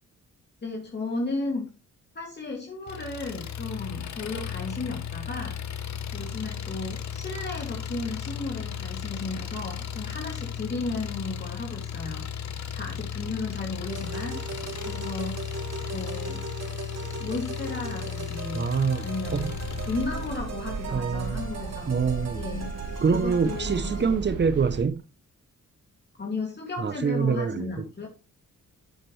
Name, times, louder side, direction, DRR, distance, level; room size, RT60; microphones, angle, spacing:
voice 1, 0.6-1.7 2.1-5.6 6.1-12.2 12.7-14.4 14.8-15.4 15.9-16.5 17.2-18.7 19.0-19.5 19.9-21.9 22.4-22.7 23.1-24.2 26.2-28.1, left 3 dB, 35° left, 2.4 m, -34 dB
Engine, 2.9-20.4, left 9 dB, 65° left, 1.0 m, -35 dB
sound 1, 13.9-24.2, right 4 dB, 55° right, 2.6 m, -39 dB
voice 2, 18.5-19.1 19.3-19.5 20.9-21.5 21.9-22.4 23.0-25.0 26.8-27.7, right 5 dB, 35° right, 0.7 m, -25 dB
sound 2, 19.2-24.8, right 5 dB, 75° right, 1.5 m, -35 dB
9.2 x 7.6 x 3.2 m
cardioid pair, 95°, 31 cm